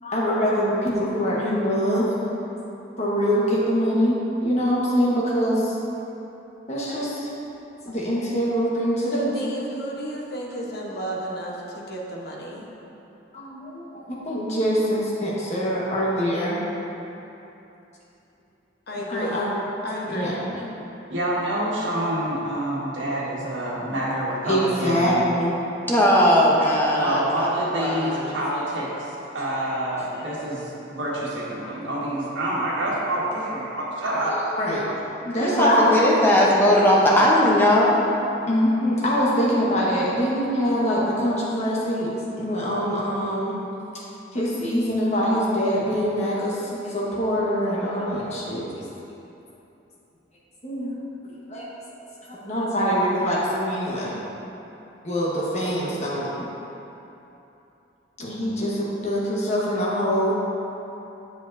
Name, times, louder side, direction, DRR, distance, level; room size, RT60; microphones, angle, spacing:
voice 1, 0.0-2.1 3.0-5.8 6.7-7.3 7.8-9.3 13.3-16.6 19.1-19.5 20.1-20.5 24.4-25.6 28.0-28.1 30.1-30.3 34.3-34.8 35.2-35.9 38.5-42.1 42.4-43.6 44.3-48.7 50.6-51.0 51.5-51.7 52.3-54.1 55.0-56.3 58.2-60.5, equal, 35° left, -6 dB, 1.3 m, -24 dB
voice 2, 9.1-12.7 18.9-19.5 19.8-20.4, right 1 dB, 55° left, -3 dB, 1.0 m, -32 dB
voice 3, 21.1-25.2 27.0-34.4, right 1 dB, 75° right, -7 dB, 1.5 m, -27 dB
voice 4, 25.9-27.5 27.7-28.4 35.4-38.0, left 1 dB, 10° left, -5 dB, 0.7 m, -18 dB
7.4 x 7.2 x 2.6 m, 3.0 s
head